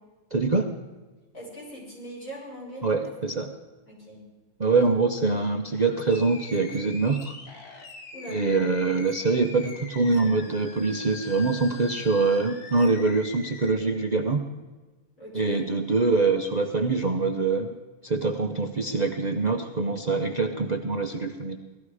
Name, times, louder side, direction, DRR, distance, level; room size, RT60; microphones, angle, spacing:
voice 1, 0.3-0.7 2.8-3.5 4.6-7.3 8.3-14.4 15.3-17.7 18.0-21.6, right 3 dB, 35° right, 4 dB, 0.8 m, -24 dB
voice 2, 1.3-3.4 3.9-4.2 8.1-8.4 15.2-15.6, equal, 60° left, -5 dB, 7.4 m, -41 dB
Animal, 5.7-13.7, left 3 dB, 85° left, 2.2 m, -43 dB
18.0 x 13.5 x 4.9 m, 1.3 s
omnidirectional pair, 1.6 m